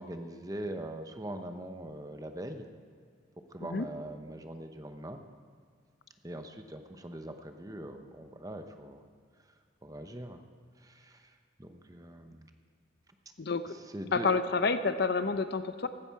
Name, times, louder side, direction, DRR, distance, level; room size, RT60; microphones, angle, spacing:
voice 1, 0.0-2.7 3.5-5.2 6.2-9.0 9.8-10.4 10.8-12.5 13.7-14.3, right 1 dB, 20° right, 6 dB, 0.8 m, -42 dB
voice 2, 14.1-15.9, left 4 dB, 55° left, 11 dB, 0.6 m, -28 dB
15.5 x 13.0 x 4.7 m, 2.1 s
head